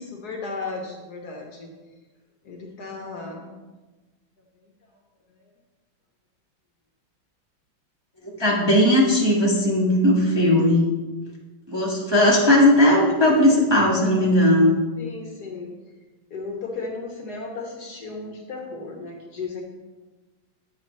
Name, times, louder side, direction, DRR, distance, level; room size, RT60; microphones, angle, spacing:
voice 1, 0.0-1.7 2.4-3.5 15.0-15.7 16.3-19.6, left 3 dB, 60° left, 1 dB, 1.3 m, -35 dB
voice 2, 8.2-10.8 11.7-14.7, left 1 dB, 15° right, -4 dB, 1.1 m, -18 dB
9.2 x 7.8 x 3.2 m, 1.2 s
omnidirectional pair, 2.2 m